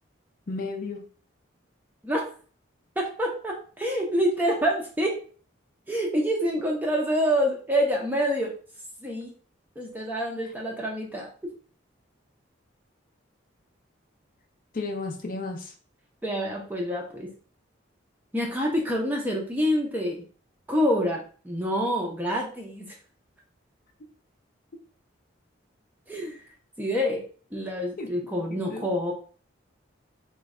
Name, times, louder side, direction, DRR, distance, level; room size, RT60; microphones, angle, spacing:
voice 1, 0.5-1.0 14.7-15.7 28.0-28.1 28.5-28.9, left 3 dB, 45° left, 4 dB, 0.5 m, -33 dB
voice 2, 3.0-5.2 5.9-8.5 9.0-9.3 9.8-11.3 16.2-17.3 18.3-20.2 20.7-22.9 26.1-26.4 26.8-27.2 27.5-29.1, equal, 10° right, -1 dB, 0.5 m, -27 dB
3.1 x 2.2 x 3.6 m, 0.42 s
head